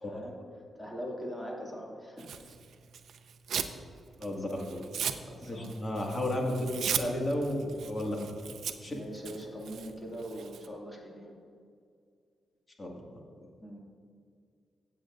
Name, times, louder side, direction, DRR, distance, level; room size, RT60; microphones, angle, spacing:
voice 1, 0.0-0.4 0.7-2.6 4.2-4.7 5.3-5.9 8.9-11.3 13.6-13.8, equal, 10° left, -3 dB, 2.4 m, -42 dB
Tearing, 2.2-3.8 4.1-10.7, right 8 dB, 70° right, 0.6 m, -37 dB
voice 2, 5.4-8.3 8.8-8.9 12.8-13.2, left 1 dB, 30° left, -1 dB, 1.9 m, -33 dB
15.5 x 8.1 x 2.6 m, 2.2 s
cardioid pair, 100°, 0 cm